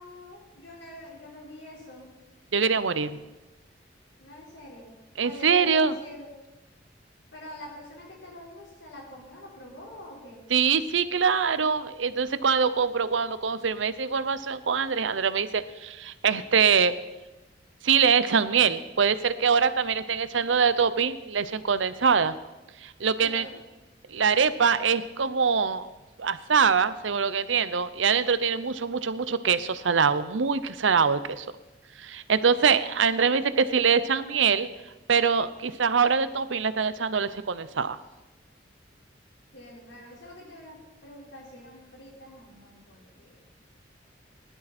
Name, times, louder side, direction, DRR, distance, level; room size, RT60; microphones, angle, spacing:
voice 1, 0.0-2.1 4.2-6.3 7.3-10.4 23.2-23.6 39.5-43.5, left 1 dB, 80° left, -3 dB, 4.7 m, -46 dB
voice 2, 2.5-3.2 5.2-5.9 10.5-17.0 17.8-22.3 22.8-23.4 24.1-25.9 26.2-31.5 32.0-34.7 35.1-38.0, right 6 dB, 90° right, 14 dB, 0.7 m, -24 dB
18.5 x 11.5 x 4.3 m, 1.1 s
head